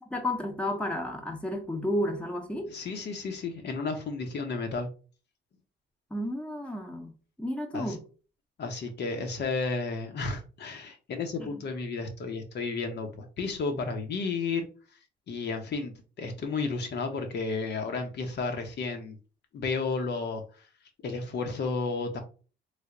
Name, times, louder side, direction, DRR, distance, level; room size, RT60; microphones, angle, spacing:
voice 1, 0.1-2.7 6.1-7.1 7.4-8.0 11.4-11.6, left 1 dB, 5° left, 0.7 m, -32 dB
voice 2, 2.7-4.9 7.7-8.0 8.6-14.7 15.3-19.2 19.5-20.4 21.0-22.2, left 4 dB, 60° left, 0.8 m, -32 dB
3.3 x 2.1 x 3.7 m
cardioid pair, 90°, 20 cm